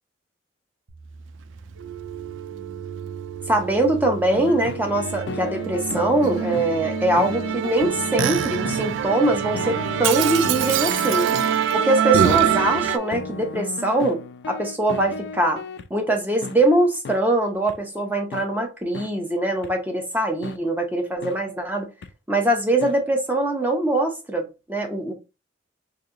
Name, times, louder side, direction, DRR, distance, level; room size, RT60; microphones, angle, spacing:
sound 1, 0.9-8.6, right 5 dB, 60° right, 0.7 m, -40 dB
Musical instrument, 1.8-13.0, right 9 dB, 85° right, 0.3 m, -25 dB
voice 1, 3.5-11.3 11.7-15.6 15.9-21.9 22.3-25.1, right 1 dB, 10° right, 0.7 m, -22 dB
sound 2, 4.3-15.9 16.4-16.6 17.0-17.2 17.7-17.8 18.3-18.5 18.9-19.1 19.6-19.7 20.4-20.6 21.2-21.4 22.0-22.1 22.8-22.9, left 4 dB, 65° left, 0.3 m, -34 dB
2.9 x 2.6 x 3.7 m
head